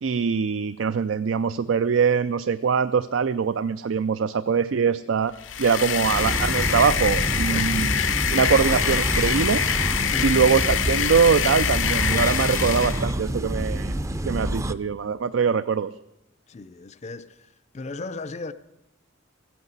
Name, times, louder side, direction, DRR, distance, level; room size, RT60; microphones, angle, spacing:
voice 1, 0.0-5.3 5.6-7.9 8.3-9.6 10.2-13.9 14.3-15.9, right 6 dB, 75° right, 0.4 m, -23 dB
sound 1, 5.4-13.1, left 8 dB, 80° left, 0.8 m, -25 dB
sound 2, 5.9-14.7, right 1 dB, 15° right, 0.5 m, -27 dB
voice 2, 16.5-17.3 17.7-18.5, left 3 dB, 35° left, 0.5 m, -36 dB
15.0 x 9.5 x 8.1 m
head